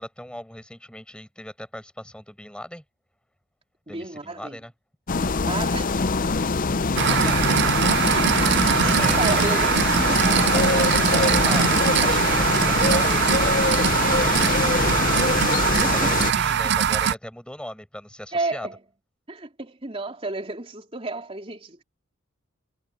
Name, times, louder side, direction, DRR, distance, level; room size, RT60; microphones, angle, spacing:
voice 1, 0.0-2.8 3.9-4.7 7.0-7.9 9.0-10.2 10.6-13.6 14.2-14.9 15.9-18.7, left 1 dB, 5° left, 7.3 m, -38 dB
voice 2, 3.9-4.6 5.5-6.0 7.9-10.9 14.6-14.8 15.8-16.2 18.3-18.8 19.3-21.8, right 2 dB, 25° right, 3.4 m, -32 dB
sound 1, 5.1-16.3, left 4 dB, 40° left, 0.6 m, -23 dB
sound 2, 7.0-17.1, right 8 dB, 55° right, 0.5 m, -22 dB
head